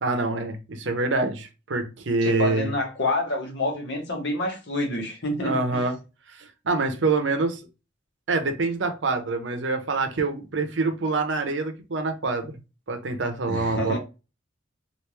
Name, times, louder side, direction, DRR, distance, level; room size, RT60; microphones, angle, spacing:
voice 1, 0.0-2.7 5.4-6.0 6.3-7.6 8.3-12.5 12.9-14.0, right 3 dB, 65° right, 0.7 m, -26 dB
voice 2, 2.2-5.8 13.5-14.0, left 1 dB, 60° left, 1.2 m, -27 dB
3.3 x 2.6 x 3.0 m
head